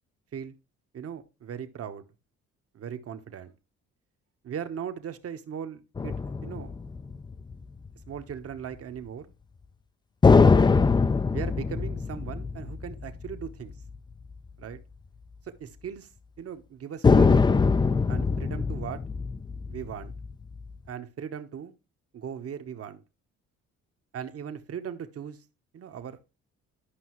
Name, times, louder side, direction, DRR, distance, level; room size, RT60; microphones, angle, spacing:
voice 1, 0.9-2.1 2.7-3.5 4.4-6.7 8.1-9.3 11.3-13.7 14.6-14.8 15.6-16.1 16.4-17.5 18.1-19.0 19.7-20.1 20.9-21.7 22.1-23.0 24.1-25.4 25.7-26.3, right 8 dB, 50° right, 1.0 m, -38 dB
sound 1, 6.0-7.9 10.2-14.0 14.3-14.4 17.0-20.7, left 4 dB, 15° left, 0.4 m, -23 dB
11.5 x 5.4 x 3.0 m
cardioid pair, 90°, 30 cm